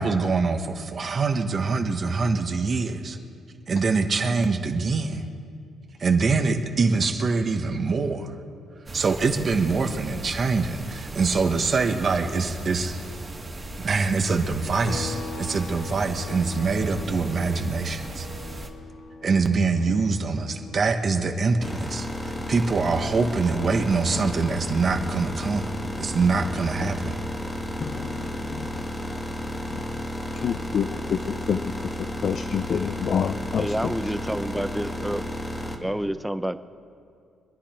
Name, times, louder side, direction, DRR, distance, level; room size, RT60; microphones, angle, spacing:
voice 1, 0.0-3.2 3.7-5.2 6.0-8.3 8.9-13.0 13.8-18.3 19.2-25.7 26.0-27.2, right 4 dB, 45° right, 5 dB, 1.3 m, -24 dB
sound 1, 8.9-18.7, right 2 dB, 25° right, 1.9 m, -38 dB
sound 2, 14.8-28.4 28.7-30.9, left 4 dB, 80° left, 1.7 m, -44 dB
sound 3, 21.6-35.8, left 1 dB, 20° left, 1.8 m, -32 dB
voice 2, 27.8-30.0 30.3-31.2 31.5-31.6 32.2-33.7, left 7 dB, 55° left, 8 dB, 0.5 m, -29 dB
voice 3, 33.6-35.2 35.8-36.6, right 1 dB, 5° right, 11 dB, 0.6 m, -28 dB
25.0 x 10.0 x 4.5 m, 2.4 s
cardioid pair, 90°, 0 cm